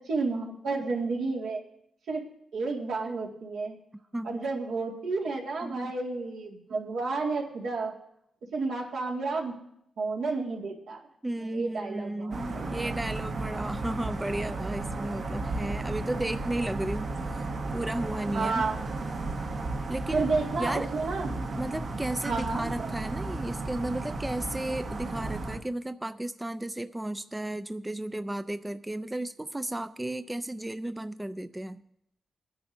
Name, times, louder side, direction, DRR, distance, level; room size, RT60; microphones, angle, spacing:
voice 1, 0.1-1.6 2.1-2.2 2.5-3.8 4.2-7.9 8.5-9.5 10.0-11.0 11.4-12.9 18.3-18.8 20.1-21.4 22.3-22.9, right 3 dB, 80° right, -1 dB, 2.0 m, -31 dB
voice 2, 5.6-5.9 11.2-17.5 17.7-18.7 19.9-20.2 20.6-20.9 21.6-31.8, right 1 dB, 10° right, 11 dB, 0.3 m, -34 dB
sound 1, 12.3-25.6, right 2 dB, 60° right, 1.3 m, -34 dB
21.0 x 10.0 x 2.7 m, 0.76 s
wide cardioid pair, 120°, 0 cm